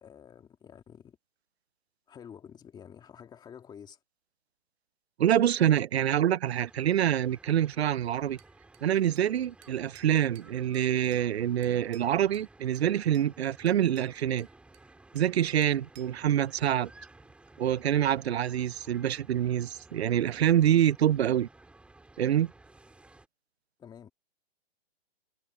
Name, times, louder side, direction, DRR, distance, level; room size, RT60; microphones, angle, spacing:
voice 1, 0.0-1.2 2.1-4.0 23.8-24.1, left 8 dB, 15° left, 2.8 m, -49 dB
voice 2, 5.2-8.4 8.8-14.5 15.1-16.9 17.6-21.5 22.2-22.5, right 10 dB, 90° right, 0.6 m, -26 dB
sound 1, 6.4-23.3, right 2 dB, 5° right, 3.5 m, -56 dB
Bell / Glass, 8.4-9.4 9.6-11.3 11.6-12.5 12.8-13.3 13.7-15.4 15.6-16.2, right 15 dB, 45° right, 4.9 m, -59 dB
hypercardioid pair, 145°, 31 cm